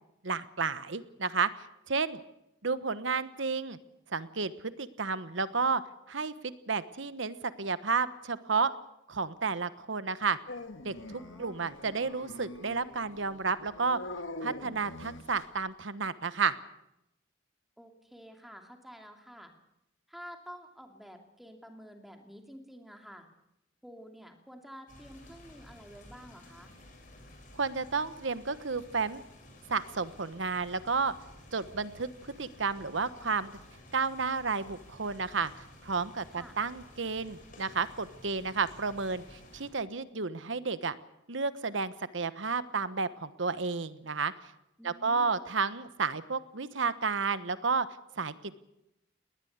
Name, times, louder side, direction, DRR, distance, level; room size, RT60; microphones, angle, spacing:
voice 1, 0.2-1.5 1.9-2.2 2.6-3.8 4.1-4.5 4.8-5.8 6.1-8.7 9.1-10.4 10.8-14.0 14.4-16.5 27.5-29.2 29.7-31.1 31.5-33.5 33.9-41.0 41.3-44.5 44.8-47.9 48.2-48.5, right 4 dB, 75° right, 13 dB, 1.2 m, -31 dB
Dog, 10.5-15.6, left 2 dB, 85° left, 1.9 m, -44 dB
voice 2, 11.1-11.6 17.8-19.5 20.1-23.3 23.8-26.7 36.3-36.6 44.8-45.4, equal, ahead, 3 dB, 2.7 m, -50 dB
sound 1, 24.9-39.7, left 1 dB, 45° left, 6.8 m, -54 dB
20.0 x 19.5 x 8.1 m, 0.85 s
head